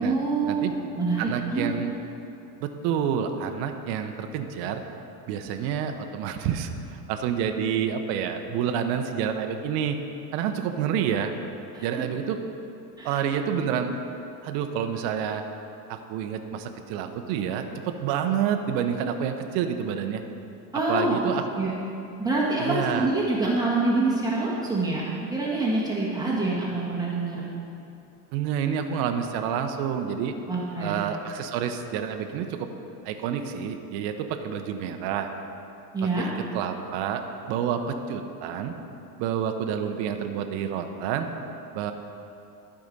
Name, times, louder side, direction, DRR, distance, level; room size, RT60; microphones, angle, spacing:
voice 1, 0.0-1.7 11.7-11.8 13.0-13.2 20.7-21.2 21.5-21.7 22.2-27.5 30.5-31.0 35.9-36.3, right 3 dB, 10° right, -7 dB, 1.5 m, -26 dB
voice 2, 1.2-1.9 2.6-4.8 5.3-10.0 10.3-11.3 11.8-12.4 13.0-13.9 14.4-15.4 15.9-20.2 20.9-21.4 22.6-23.1 28.3-30.3 30.8-32.7 33.0-35.3 36.2-37.2 37.5-38.7 39.2-41.3 41.7-41.9, right 8 dB, 50° right, 6 dB, 0.8 m, -28 dB
12.0 x 5.0 x 5.3 m, 2.8 s
supercardioid pair, 115°, 48 cm